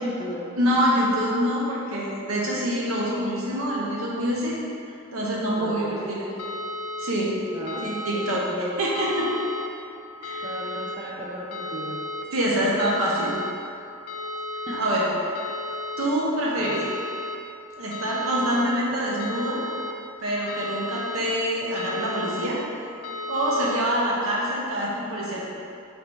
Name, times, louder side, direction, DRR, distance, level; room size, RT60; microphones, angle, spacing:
voice 1, 0.0-0.5 5.5-6.1 7.5-8.7 10.4-12.0 14.5-14.8 16.6-16.8, equal, 20° right, -6 dB, 0.4 m, -35 dB
voice 2, 0.6-4.6 5.1-6.4 7.0-7.4 7.8-8.4 8.8-9.3 10.2-10.4 12.3-13.4 14.7-15.0 16.0-16.9 17.8-19.6 20.2-22.6 23.3-25.4, equal, 75° right, -5 dB, 0.8 m, -25 dB
sound 1, 6.4-7.1 7.7-8.4 8.9-9.7 10.2-11.0 11.5-12.2 12.8-13.5 14.1-14.8 15.3-16.1 16.6-17.4 17.9-18.6 19.2-19.9 20.5-21.2 21.8-22.5 23.0-23.8, left 1 dB, 85° left, 0.4 m, -33 dB
3.3 x 2.6 x 4.4 m, 2.6 s
head